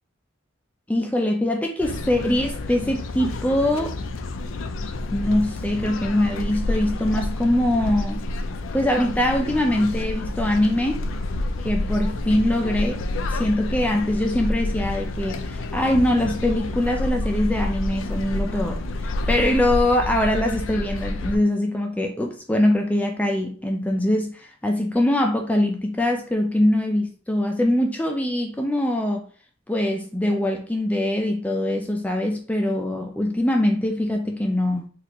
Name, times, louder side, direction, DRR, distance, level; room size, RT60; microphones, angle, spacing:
voice 1, 0.9-4.0 5.1-8.2 8.7-11.0 11.6-13.0 13.3-29.3 29.7-34.9, left 1 dB, 5° left, 0.4 m, -23 dB
sound 1, 1.8-21.4, left 2 dB, 70° left, 0.4 m, -29 dB
4.1 x 2.5 x 2.9 m
head